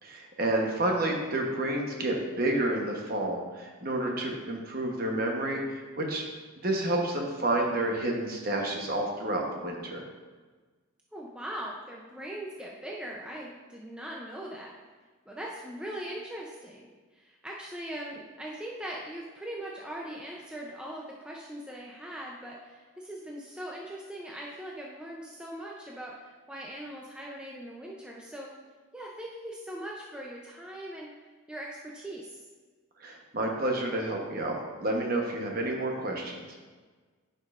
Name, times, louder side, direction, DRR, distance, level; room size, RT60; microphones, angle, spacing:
voice 1, 0.0-6.2 6.6-10.0 33.0-36.5, right 1 dB, 45° right, 0 dB, 1.0 m, -30 dB
voice 2, 11.1-14.7 15.3-28.5 28.9-31.1 31.5-32.4, right 1 dB, 5° right, -3 dB, 0.5 m, -40 dB
10.5 x 5.3 x 2.5 m, 1.4 s
head